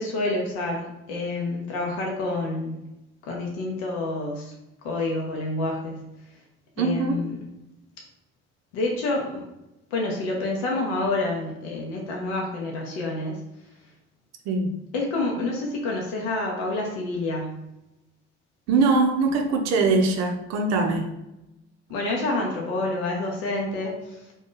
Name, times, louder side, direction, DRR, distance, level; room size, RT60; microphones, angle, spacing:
voice 1, 0.0-2.8 3.2-4.5 4.8-6.0 6.8-7.3 8.7-9.4 9.9-13.4 14.9-17.6 21.9-24.2, left 2 dB, 60° left, -1 dB, 0.7 m, -28 dB
voice 2, 6.8-7.3 14.5-14.8 18.7-21.2, right 3 dB, 55° right, 4 dB, 0.7 m, -22 dB
2.9 x 2.5 x 3.7 m, 0.92 s
figure-of-eight pair, 50°, 33 cm